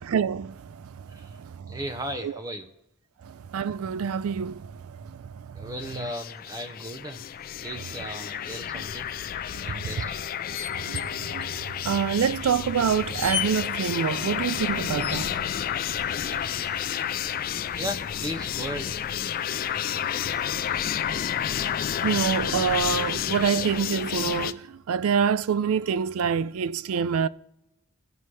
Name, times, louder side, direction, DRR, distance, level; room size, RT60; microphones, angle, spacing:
voice 1, 0.1-1.8 2.2-2.4 3.2-5.7 8.7-8.8 9.5-10.0 10.7-15.4 22.0-27.3, right 7 dB, 75° right, 0.4 m, -27 dB
voice 2, 1.7-2.7 5.5-7.3 7.6-9.1 9.7-10.2 16.0-16.7 17.8-19.0 19.8-20.2 20.6-21.0, equal, 15° right, 0.6 m, -37 dB
sound 1, 5.8-24.5, left 9 dB, 40° left, 0.3 m, -30 dB
sound 2, 9.1-9.2 10.5-11.1 11.4-11.5 12.3-12.4 13.0-13.5 15.0-15.4 17.4-18.0 19.5-19.6 19.8-20.0 20.7-21.5 21.9-22.0, left 8 dB, 25° left, 1.1 m, -35 dB
16.5 x 5.5 x 3.2 m
head